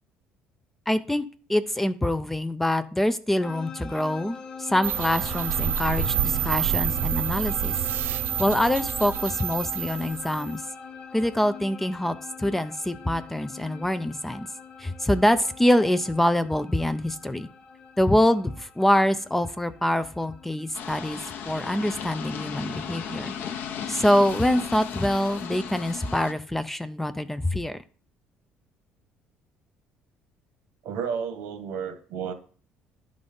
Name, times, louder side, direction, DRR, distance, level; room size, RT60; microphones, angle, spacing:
voice 1, 0.9-7.7 8.4-10.6 11.1-14.5 14.8-17.5 18.0-21.2 21.5-23.3 23.9-27.8, left 1 dB, 5° left, 11 dB, 0.4 m, -25 dB
sound 1, 3.4-20.9, left 6 dB, 35° left, 1.2 m, -43 dB
sound 2, 4.8-10.6, right 9 dB, 60° right, 0.5 m, -28 dB
sound 3, 20.7-26.3, left 7 dB, 55° left, 0.8 m, -35 dB
voice 2, 30.8-32.3, right 7 dB, 80° right, 8 dB, 1.5 m, -32 dB
10.5 x 3.9 x 5.2 m, 0.41 s
cardioid pair, 150°, 4 cm